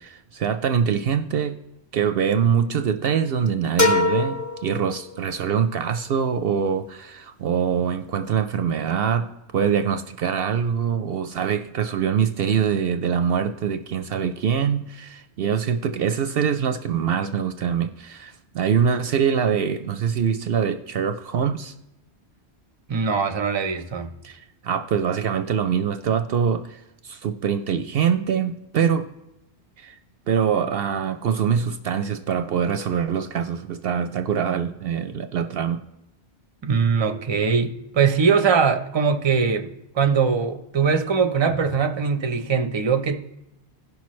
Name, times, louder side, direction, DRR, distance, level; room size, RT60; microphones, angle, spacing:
voice 1, 0.0-1.5 1.9-21.7 24.2-29.0 29.8-30.0 30.3-35.8, right 7 dB, 65° right, 9 dB, 0.7 m, -24 dB
sound 1, 3.8-5.5, left 2 dB, 20° left, 0.8 m, -23 dB
voice 2, 22.9-24.1 36.6-39.7 39.9-43.2, right 5 dB, 30° right, 7 dB, 0.6 m, -21 dB
17.0 x 6.0 x 3.1 m, 0.90 s
omnidirectional pair, 1.1 m